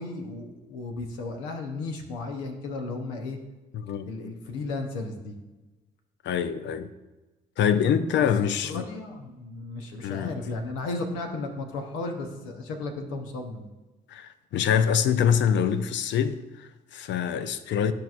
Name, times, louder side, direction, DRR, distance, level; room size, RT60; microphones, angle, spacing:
voice 1, 0.0-3.4 4.1-5.3 8.2-8.3 8.6-13.7, left 3 dB, 85° left, 0.9 m, -34 dB
voice 2, 3.7-4.1 6.2-6.9 7.6-8.9 10.0-10.3 14.1-17.9, left 8 dB, 60° left, 0.5 m, -25 dB
11.5 x 4.6 x 2.4 m
hypercardioid pair, 50°, 21 cm